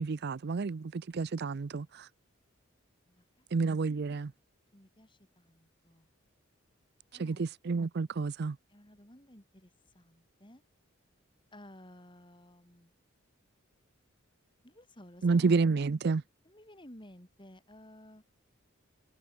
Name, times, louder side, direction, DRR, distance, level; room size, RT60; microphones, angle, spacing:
voice 1, 0.0-2.1 3.5-4.3 7.2-8.6 15.2-16.2, right 4 dB, 50° right, 0.5 m, -30 dB
voice 2, 3.1-3.5 4.7-6.1 7.1-7.4 8.7-10.6 11.5-12.9 14.6-15.7 16.4-18.2, left 1 dB, 25° left, 5.6 m, -55 dB
head